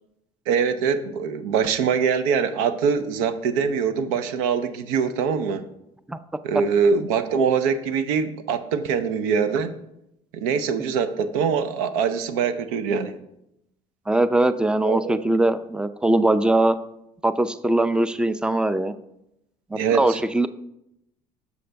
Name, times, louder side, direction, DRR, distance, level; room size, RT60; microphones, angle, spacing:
voice 1, 0.5-5.7 6.4-9.7 10.3-13.2 14.8-15.2 19.7-20.2, right 6 dB, 85° right, 12 dB, 0.5 m, -23 dB
voice 2, 14.1-16.8 17.2-18.9 19.7-20.5, right 2 dB, 5° right, 13 dB, 0.4 m, -21 dB
6.9 x 6.3 x 3.4 m, 0.83 s
supercardioid pair, 70°, 17 cm